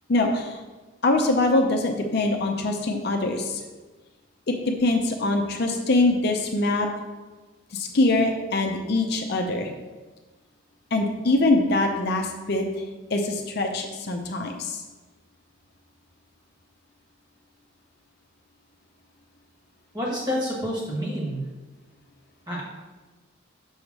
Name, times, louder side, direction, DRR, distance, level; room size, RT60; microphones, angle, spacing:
voice 1, 0.1-0.6 1.0-3.6 4.5-4.6 4.8-6.9 7.7-9.7 10.9-12.7 13.1-14.8, left 2 dB, 50° left, 3 dB, 0.6 m, -23 dB
voice 2, 19.9-21.4 22.5-22.6, equal, 20° right, -4 dB, 1.6 m, -28 dB
6.2 x 3.5 x 5.9 m, 1.3 s
head